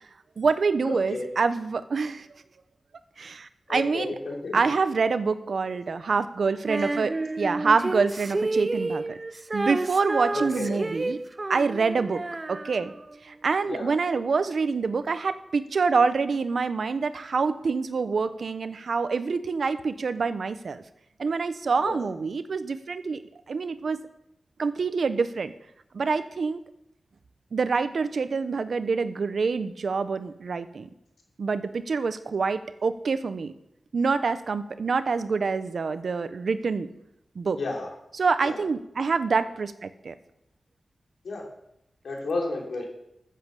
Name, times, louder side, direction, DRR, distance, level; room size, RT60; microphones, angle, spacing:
voice 1, 0.4-2.3 3.2-4.1 4.5-9.2 9.5-11.2 11.5-12.2 12.5-12.9 13.2-20.8 21.2-23.2 23.5-24.0 24.6-25.5 25.9-26.6 27.5-30.9 31.4-33.5 33.9-36.9 37.3-37.6 38.1-40.1, right 4 dB, 70° right, 12 dB, 0.9 m, -26 dB
voice 2, 3.7-4.7 10.3-10.8 13.6-13.9 21.8-22.0 37.5-37.9 38.4-38.6 41.2-41.4 42.0-42.8, left 2 dB, 90° left, 0 dB, 3.8 m, -32 dB
Female singing, 6.7-13.2, right 2 dB, 30° right, 0.4 m, -30 dB
14.5 x 7.7 x 6.9 m, 0.79 s
wide cardioid pair, 110°, 0 cm